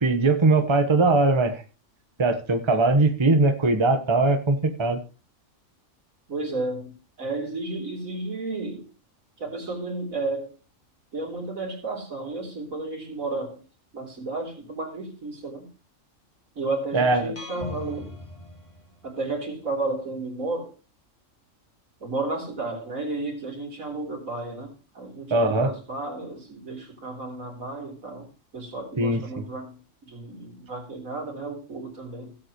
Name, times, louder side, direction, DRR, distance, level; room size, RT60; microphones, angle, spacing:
voice 1, 0.0-1.6 2.2-5.0 16.9-17.3 25.3-25.7 29.0-29.4, right 2 dB, 20° right, 1.2 m, -21 dB
voice 2, 6.3-8.9 9.4-10.5 11.1-13.6 13.9-15.7 16.6-18.2 19.0-20.7 22.0-28.3 28.5-32.4, right 2 dB, 90° right, 4.0 m, -32 dB
sound 1, 17.4-19.4, left 2 dB, 25° left, 1.8 m, -39 dB
17.0 x 7.8 x 3.1 m
omnidirectional pair, 1.4 m